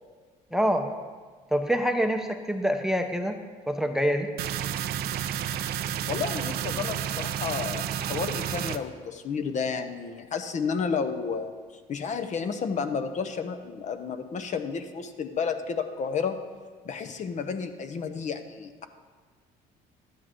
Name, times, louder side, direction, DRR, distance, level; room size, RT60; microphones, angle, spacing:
voice 1, 0.5-0.9 1.5-3.4 3.7-4.3, equal, 5° right, 5 dB, 0.7 m, -25 dB
sound 1, 4.4-8.8, right 10 dB, 65° right, 0.5 m, -31 dB
voice 2, 6.1-11.5 11.9-16.4 16.8-18.9, left 5 dB, 45° left, 8 dB, 0.9 m, -31 dB
12.5 x 10.0 x 3.8 m, 1.5 s
cardioid pair, 110°, 17 cm